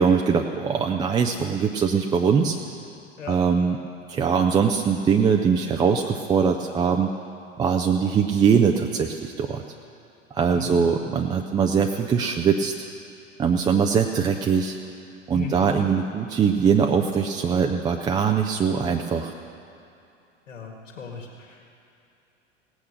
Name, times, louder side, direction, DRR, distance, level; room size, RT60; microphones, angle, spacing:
voice 1, 0.0-2.6 3.3-3.8 4.1-7.1 7.6-9.6 10.3-12.7 13.4-14.8 15.3-19.3, right 6 dB, 10° right, 3 dB, 0.4 m, -22 dB
voice 2, 20.5-21.7, left 7 dB, 75° left, -1 dB, 2.0 m, -37 dB
17.5 x 8.7 x 6.5 m, 2.7 s
figure-of-eight pair, 90°, 38 cm